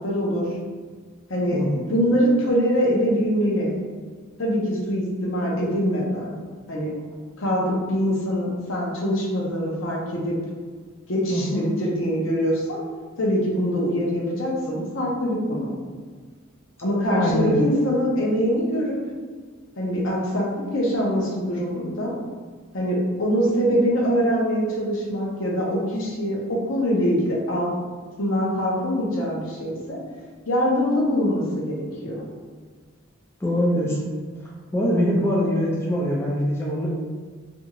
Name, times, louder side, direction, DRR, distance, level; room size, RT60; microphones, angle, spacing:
voice 1, 0.0-0.5 1.3-1.6 1.9-3.7 4.4-6.3 6.7-6.9 7.4-10.4 11.1-12.8 13.2-15.7 16.8-19.0 19.8-20.5 20.7-22.2 22.7-27.7 28.2-30.0 30.5-31.8 32.0-32.2, equal, 75° left, -4 dB, 0.7 m, -23 dB
voice 2, 1.5-1.8 11.3-11.6 17.1-17.6 33.4-34.0 34.4-36.9, equal, 15° left, -4 dB, 0.3 m, -23 dB
2.6 x 2.4 x 2.9 m, 1.5 s
head